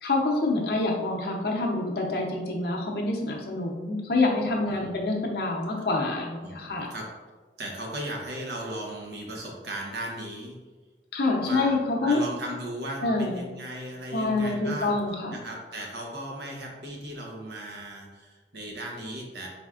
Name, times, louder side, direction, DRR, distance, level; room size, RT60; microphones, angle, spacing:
voice 1, 0.0-6.9 11.1-12.2 13.0-13.4 14.1-15.4, left 2 dB, 60° left, -1 dB, 0.7 m, -26 dB
voice 2, 6.4-7.0 7.6-10.6 11.4-15.0 15.3-19.5, right 1 dB, 75° right, -1 dB, 0.9 m, -37 dB
4.2 x 3.5 x 2.4 m, 1.3 s
head